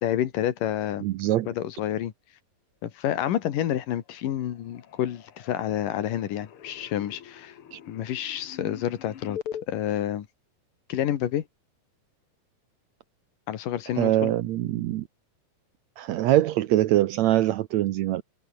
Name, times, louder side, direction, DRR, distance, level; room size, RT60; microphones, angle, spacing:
voice 1, 0.0-1.0 1.5-2.1 2.8-7.6 7.9-9.4 9.7-10.3 10.9-11.5 13.5-14.3, left 11 dB, 80° left, 3.3 m, -29 dB
voice 2, 1.0-1.5 7.7-7.8 14.0-15.0 16.0-18.2, right 14 dB, 75° right, 1.7 m, -23 dB
sound 1, 3.9-4.2 4.5-9.6, left 9 dB, 50° left, 2.0 m, -43 dB
omnidirectional pair, 3.8 m